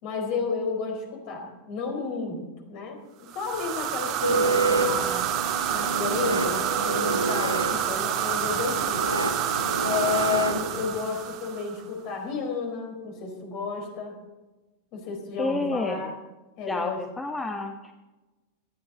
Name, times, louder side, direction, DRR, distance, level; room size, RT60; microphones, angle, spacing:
voice 1, 0.0-5.2 5.7-9.0 9.8-14.2 14.9-16.1 16.6-17.0, left 5 dB, 45° left, 2 dB, 4.5 m, -32 dB
sound 1, 3.3-11.8, right 10 dB, 40° right, 1.8 m, -28 dB
sound 2, 4.2-10.9, right 2 dB, 90° left, 1.5 m, -28 dB
voice 2, 15.4-16.1 16.7-17.9, left 2 dB, 10° left, 4 dB, 1.1 m, -29 dB
18.0 x 13.5 x 4.1 m, 1.2 s
figure-of-eight pair, 90°, 0 cm